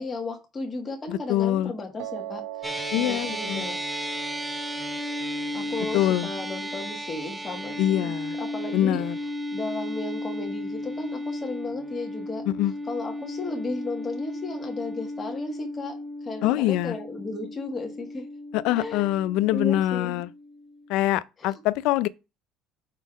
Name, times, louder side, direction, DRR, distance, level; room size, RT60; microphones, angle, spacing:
voice 1, 0.0-3.8 5.5-9.0 9.5-12.4 12.9-15.9 16.2-18.2 18.8-20.2 21.4-21.6, left 3 dB, 20° left, 1.6 m, -35 dB
voice 2, 1.1-1.7 2.9-3.6 5.9-6.3 7.8-8.4 8.7-9.2 12.5-12.7 16.4-17.0 18.5-20.3 20.9-22.1, left 14 dB, 70° left, 0.4 m, -24 dB
Piano, 2.0-8.1, right 13 dB, 90° right, 1.7 m, -42 dB
sound 1, 2.6-21.2, left 1 dB, 5° right, 0.8 m, -34 dB
5.6 x 4.1 x 5.0 m
cardioid pair, 160°, 0 cm